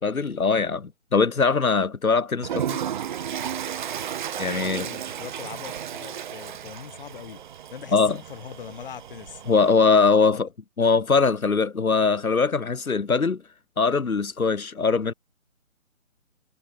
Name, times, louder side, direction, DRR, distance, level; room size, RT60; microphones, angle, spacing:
voice 1, 0.0-2.8 4.4-4.9 7.9-8.2 9.5-10.5 10.8-13.4 13.8-15.1, left 4 dB, 80° left, 2.6 m, -21 dB
Toilet flush, 2.4-9.9, right 9 dB, 35° right, 2.4 m, -34 dB
voice 2, 4.6-7.4 7.7-9.4, left 8 dB, 40° left, 3.8 m, -41 dB
figure-of-eight pair, 155°, 41 cm